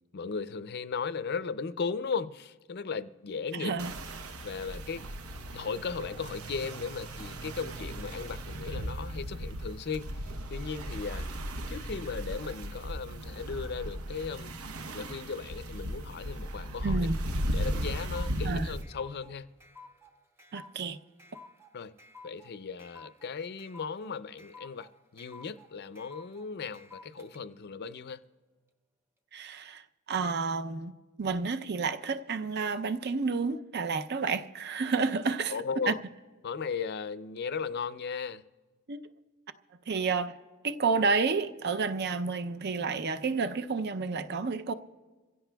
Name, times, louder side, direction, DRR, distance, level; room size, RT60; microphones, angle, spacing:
voice 1, 0.1-3.7 4.4-5.0 5.5-11.3 11.7-14.5 14.9-17.1 17.5-19.5 21.7-22.0 22.2-28.2 35.5-36.0 36.4-38.5, left 5 dB, 50° left, 0.5 m, -36 dB
voice 2, 3.5-3.9 16.8-17.2 18.4-18.7 20.5-21.0 29.3-29.8 30.1-30.9 31.2-35.5 35.9-36.0 38.9-39.0 39.9-40.4 40.6-44.7, right 4 dB, 50° right, 0.5 m, -30 dB
sound 1, 3.8-18.8, equal, 80° right, 0.8 m, -36 dB
sound 2, 17.4-27.4, left 3 dB, 10° right, 0.8 m, -53 dB
27.5 x 16.0 x 2.3 m
head